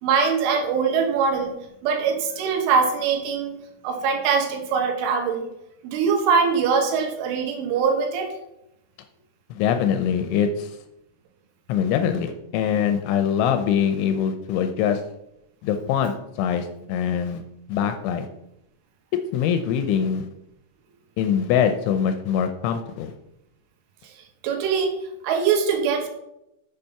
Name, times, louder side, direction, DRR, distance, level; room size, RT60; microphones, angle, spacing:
voice 1, 0.0-1.5 1.8-3.5 3.8-5.5 5.8-8.3 24.4-24.9 25.2-26.1, right 5 dB, 75° right, 4 dB, 3.6 m, -22 dB
voice 2, 9.5-10.8 11.7-15.0 15.6-17.4 17.7-18.3 19.3-20.3 21.2-23.1, left 8 dB, 80° left, 8 dB, 2.8 m, -23 dB
8.3 x 6.9 x 5.7 m, 0.85 s
omnidirectional pair, 5.8 m